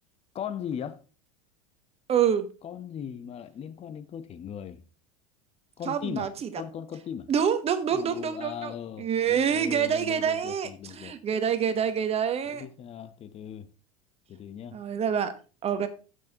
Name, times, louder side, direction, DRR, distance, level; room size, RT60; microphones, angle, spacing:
voice 1, 0.3-1.0 2.6-4.8 5.8-6.3 6.5-7.3 7.9-11.2 12.5-13.7 14.3-14.8, left 8 dB, 35° left, 0.9 m, -38 dB
voice 2, 2.1-2.5 5.9-6.5 7.3-8.7 9.0-12.6 14.7-15.3 15.6-15.9, right 8 dB, 35° right, 1.1 m, -26 dB
14.5 x 6.4 x 2.9 m
hypercardioid pair, 85°, 18 cm